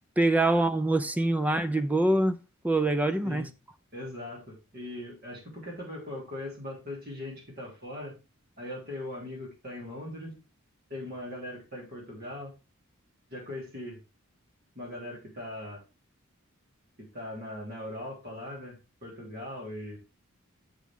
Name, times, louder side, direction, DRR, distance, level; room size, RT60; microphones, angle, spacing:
voice 1, 0.2-2.4 2.6-3.5, right 2 dB, 5° right, 0.4 m, -24 dB
voice 2, 3.9-8.2 8.6-10.4 10.9-12.5 13.3-14.0 14.7-15.8 17.0-20.0, left 1 dB, 45° right, 3.3 m, -40 dB
7.1 x 6.3 x 3.6 m
head